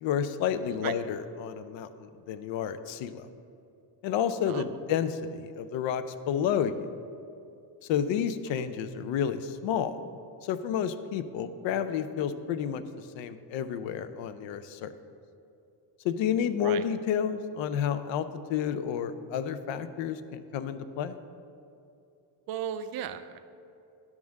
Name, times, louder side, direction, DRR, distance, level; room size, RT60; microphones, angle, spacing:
voice 1, 0.0-3.2 4.0-6.7 7.9-9.9 10.4-12.8 13.1-14.9 16.0-21.2, left 8 dB, 70° left, 12 dB, 0.6 m, -30 dB
voice 2, 4.5-4.8 8.5-8.6 16.6-16.9 22.5-23.4, right 10 dB, 50° right, 10 dB, 0.5 m, -36 dB
10.5 x 3.6 x 6.3 m, 2.6 s
cardioid pair, 130°, 48 cm